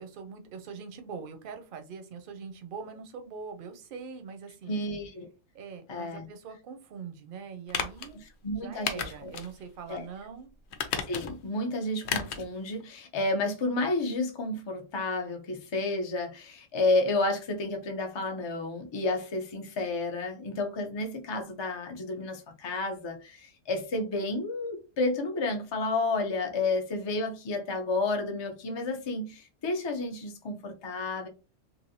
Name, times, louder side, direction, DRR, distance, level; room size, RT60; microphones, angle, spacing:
voice 1, 0.0-4.8 5.5-8.2 8.6-10.5, right 5 dB, 55° right, 0.7 m, -43 dB
voice 2, 4.7-5.3 5.9-6.3 8.4-9.3 9.9-10.0 11.1-31.3, left 2 dB, 40° left, 0.4 m, -31 dB
sound 1, 7.7-8.1 8.9-9.5 9.9-10.0 10.7-11.5 12.0-12.5 12.8-12.9, left 7 dB, 65° left, 0.8 m, -33 dB
3.1 x 2.5 x 2.7 m
omnidirectional pair, 1.3 m